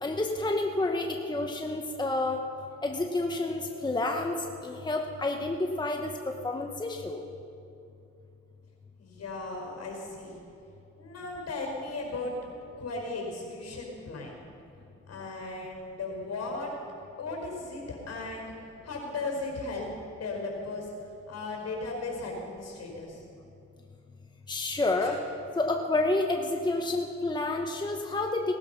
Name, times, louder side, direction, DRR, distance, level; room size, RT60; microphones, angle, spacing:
voice 1, 0.0-2.4 2.8-7.2 24.5-25.2 25.6-28.5, left 2 dB, 15° left, 2 dB, 1.1 m, -29 dB
voice 2, 9.0-10.4 11.0-12.3 12.8-14.4 15.1-16.7 17.2-18.5 18.8-20.9 21.3-23.2 25.0-25.2, left 3 dB, 55° left, 0 dB, 5.0 m, -36 dB
19.0 x 12.5 x 5.8 m, 2.7 s
cardioid pair, 90°, 30 cm